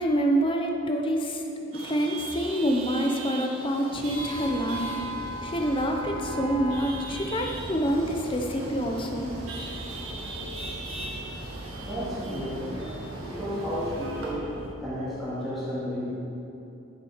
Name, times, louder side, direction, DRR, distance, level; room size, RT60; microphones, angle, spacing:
voice 1, 0.0-1.4 1.7-4.9 5.4-9.3, equal, 25° left, 2 dB, 0.7 m, -27 dB
Chatter / Vehicle horn car horn honking / Traffic noise roadway noise, 1.7-14.3, right 1 dB, 75° right, 1.7 m, -38 dB
sound 1, 3.9-14.7, right 1 dB, 25° right, 0.6 m, -41 dB
voice 2, 11.8-16.1, equal, ahead, -10 dB, 2.2 m, -33 dB
8.4 x 7.4 x 5.0 m, 2.9 s
head